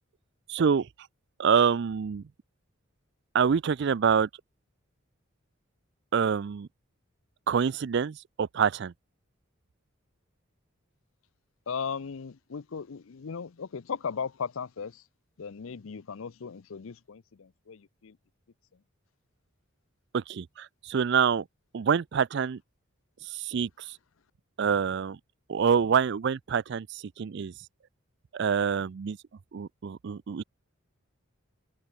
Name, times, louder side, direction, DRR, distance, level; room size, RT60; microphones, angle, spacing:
voice 1, 0.5-0.9 1.4-2.2 3.3-4.3 6.1-6.7 7.5-8.9 20.1-21.5 21.7-22.6 23.2-24.0 24.6-25.2 25.5-27.5 28.3-29.2 29.5-30.4, right 6 dB, 55° right, 0.4 m, -26 dB
voice 2, 11.7-15.0 15.4-18.2, left 6 dB, 70° left, 0.5 m, -37 dB
open air
head